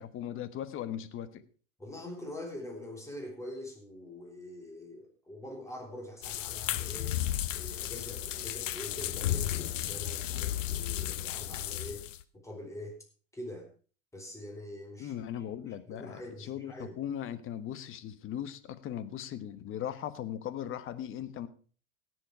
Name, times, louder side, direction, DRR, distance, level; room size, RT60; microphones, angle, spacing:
voice 1, 0.0-1.4 15.0-16.2 16.5-21.5, left 10 dB, 35° left, 14 dB, 1.3 m, -38 dB
voice 2, 1.8-7.2 7.5-12.1 12.3-13.0 13.3-13.7 14.1-17.0, left 1 dB, 10° left, 2 dB, 4.5 m, -44 dB
sound 1, 6.2-12.2, left 12 dB, 80° left, 1.0 m, -34 dB
17.5 x 7.8 x 4.8 m, 0.40 s
hypercardioid pair, 110°, 37 cm